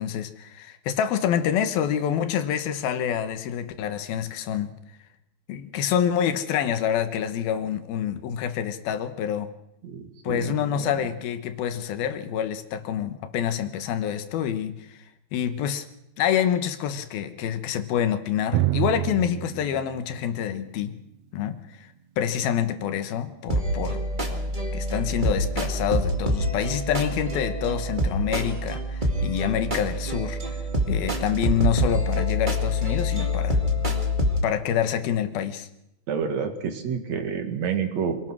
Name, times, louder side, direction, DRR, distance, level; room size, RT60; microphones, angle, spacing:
voice 1, 0.0-4.7 5.5-9.5 10.2-15.0 15.3-15.9 16.2-21.0 21.3-21.8 22.2-24.0 24.3-24.4 24.7-30.4 30.9-33.6 34.4-35.7, left 9 dB, 80° left, 10 dB, 3.1 m, -27 dB
voice 2, 9.8-10.5 10.8-10.9 36.1-38.3, right 6 dB, 50° right, 6 dB, 2.9 m, -29 dB
Drum, 18.5-22.1, right 15 dB, 90° right, 1.5 m, -29 dB
sound 1, 23.5-34.4, equal, 20° right, 1.5 m, -26 dB
26.0 x 18.5 x 6.2 m, 0.83 s
omnidirectional pair, 4.3 m